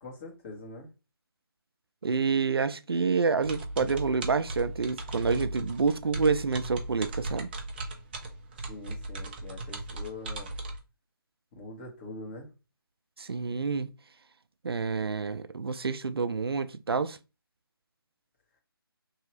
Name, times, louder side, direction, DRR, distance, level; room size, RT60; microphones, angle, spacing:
voice 1, 0.0-0.9 8.6-10.5 11.5-12.5, left 2 dB, 25° left, 1.1 m, -43 dB
voice 2, 2.0-7.5 13.2-13.9 14.6-17.2, right 5 dB, 75° right, 0.4 m, -28 dB
sound 1, 3.4-10.8, right 2 dB, 25° right, 0.5 m, -37 dB
3.1 x 2.7 x 2.9 m
figure-of-eight pair, 150°, 13 cm